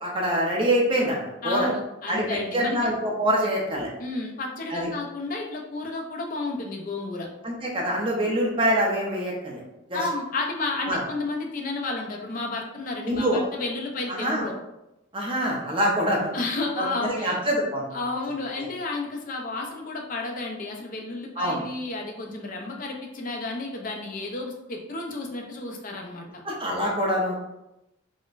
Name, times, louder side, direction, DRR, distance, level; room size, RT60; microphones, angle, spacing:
voice 1, 0.0-1.7 2.1-2.3 2.5-3.9 4.7-4.9 7.4-9.6 9.9-10.0 10.9-11.0 13.0-13.4 14.1-14.4 15.1-16.3 16.8-17.8 18.6-18.7 21.4-21.6 26.4-27.4, equal, 25° right, -2 dB, 0.6 m, -25 dB
voice 2, 1.4-2.8 4.0-7.3 9.9-14.6 16.3-17.4 17.9-26.4, left 3 dB, 40° left, 1 dB, 0.4 m, -31 dB
3.7 x 2.1 x 2.4 m, 0.89 s
head